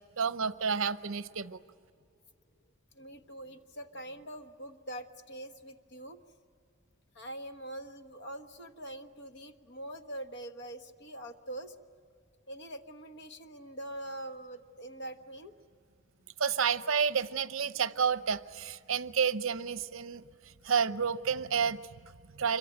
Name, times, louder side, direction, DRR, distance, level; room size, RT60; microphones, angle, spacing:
voice 1, 0.2-1.6 16.4-20.2 20.6-22.6, right 6 dB, 70° right, 13 dB, 0.7 m, -30 dB
voice 2, 2.9-6.2 7.1-11.7 12.5-15.5, right 1 dB, 55° left, 7 dB, 1.3 m, -44 dB
26.5 x 23.5 x 9.0 m, 2.2 s
head